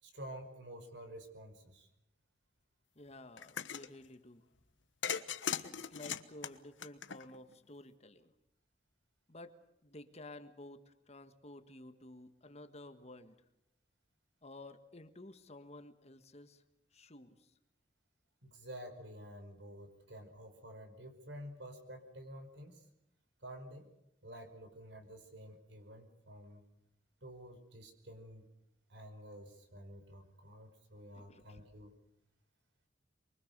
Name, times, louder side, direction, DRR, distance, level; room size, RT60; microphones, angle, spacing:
voice 1, 0.0-1.9 18.4-22.9 23.4-23.9 24.2-26.6 27.2-28.5 28.9-31.9, equal, 70° right, 7 dB, 5.1 m, -50 dB
voice 2, 2.9-4.4 5.6-8.3 9.3-9.5 9.8-13.3 14.4-16.6 16.9-17.5 31.1-31.6, left 2 dB, 35° left, 9 dB, 1.6 m, -53 dB
sound 1, 3.4-3.9 5.0-7.5, left 8 dB, 85° left, 1.2 m, -39 dB
24.5 x 24.0 x 6.8 m, 0.84 s
head